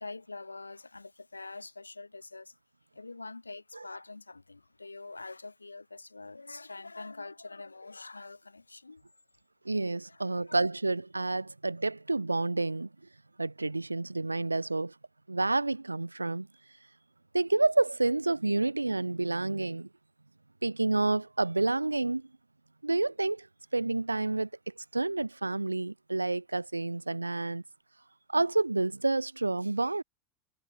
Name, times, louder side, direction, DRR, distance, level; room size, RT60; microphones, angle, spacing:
voice 1, 0.0-2.5 2.9-9.0 9.6-9.8 10.1-10.6, left 3 dB, 85° left, 5.5 m, -45 dB
voice 2, 9.7-12.9 13.4-14.9 15.3-16.5 17.3-19.9 20.6-22.3 22.8-23.5 23.7-24.5 24.9-27.6 28.3-30.0, right 2 dB, 85° right, 0.4 m, -29 dB
figure-of-eight pair, 80°, 0 cm